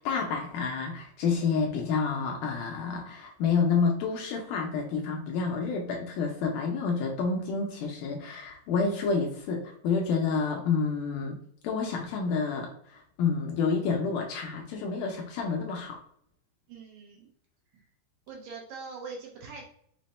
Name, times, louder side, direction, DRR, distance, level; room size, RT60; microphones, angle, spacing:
voice 1, 0.0-11.4 11.6-16.0, left 5 dB, 80° left, 1 dB, 1.8 m, -29 dB
voice 2, 16.7-17.3 17.7-17.9 18.3-19.6, right 4 dB, 75° right, 0 dB, 2.1 m, -43 dB
5.9 x 2.1 x 4.1 m, 0.69 s
omnidirectional pair, 4.3 m